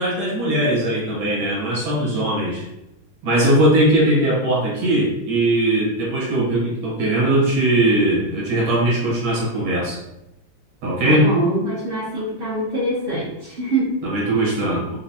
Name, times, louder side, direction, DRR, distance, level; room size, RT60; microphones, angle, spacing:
voice 1, 0.0-2.7 3.2-10.0 10.8-11.3 14.0-14.9, right 1 dB, 80° right, -6 dB, 2.2 m, -19 dB
voice 2, 11.0-13.9, right 2 dB, 55° right, -6 dB, 0.6 m, -24 dB
4.9 x 2.2 x 2.8 m, 0.91 s
omnidirectional pair, 2.2 m